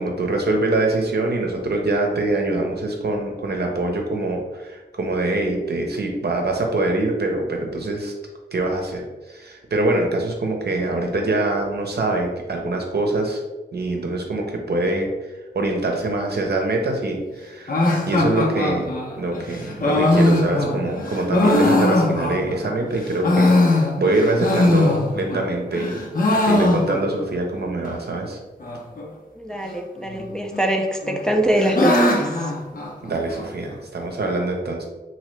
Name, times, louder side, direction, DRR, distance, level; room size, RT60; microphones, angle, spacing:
voice 1, 0.0-8.1 8.5-13.4 13.7-17.7 18.1-18.9 19.2-26.0 26.4-28.4 33.0-34.8, right 2 dB, 65° right, 2 dB, 0.7 m, -24 dB
Llanto nube, 17.7-22.7 23.1-25.4 25.7-27.3 27.5-27.6 27.8-27.9 28.6-29.0 30.1-30.7 31.0-33.4, left 2 dB, 50° left, 0.7 m, -20 dB
voice 2, 29.4-32.5, right 1 dB, 5° left, 2 dB, 0.4 m, -23 dB
2.9 x 2.7 x 3.1 m, 1.2 s
cardioid pair, 40°, 18 cm